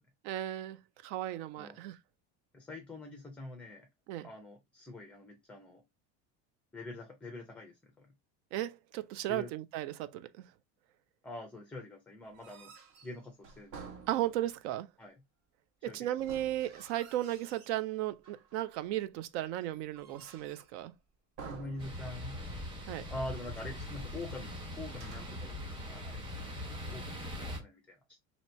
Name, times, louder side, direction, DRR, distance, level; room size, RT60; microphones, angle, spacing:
voice 1, 0.2-2.0 4.1-4.3 8.5-10.4 14.1-14.9 15.9-20.9 22.9-23.1, right 14 dB, 75° right, 0.7 m, -35 dB
voice 2, 2.5-3.9 4.2-5.8 6.7-8.1 9.3-9.5 11.2-12.7 13.0-13.8 15.0-15.1 15.9-16.2 21.4-22.4 23.1-28.2, left 2 dB, 5° left, 0.4 m, -45 dB
sound 1, 12.2-14.7 16.1-17.8 18.2-18.8 19.4-20.8 21.4-22.5 22.7-22.8 23.3-23.8 24.9-25.5, right 5 dB, 45° right, 1.2 m, -52 dB
sound 2, 21.8-27.6, left 1 dB, 15° right, 1.1 m, -41 dB
2.8 x 2.8 x 4.3 m
cardioid pair, 165°, 36 cm